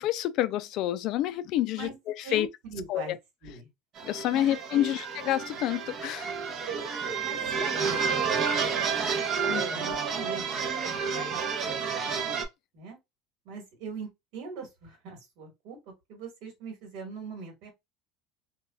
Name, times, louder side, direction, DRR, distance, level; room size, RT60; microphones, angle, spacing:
voice 1, 0.0-1.9 2.3-2.5 2.9-3.2 4.0-6.3 9.5-9.6, left 13 dB, 55° left, 0.3 m, -28 dB
voice 2, 2.2-3.1 3.4-3.7 4.3-4.5 4.7-4.9 6.7-6.9 7.2-8.5 9.4-10.8 11.0-11.6 12.7-13.0 13.4-17.7, right 4 dB, 70° right, 1.3 m, -41 dB
sound 1, 4.0-12.4, right 6 dB, 40° right, 0.6 m, -30 dB
3.3 x 2.3 x 2.2 m
cardioid pair, 140°, 0 cm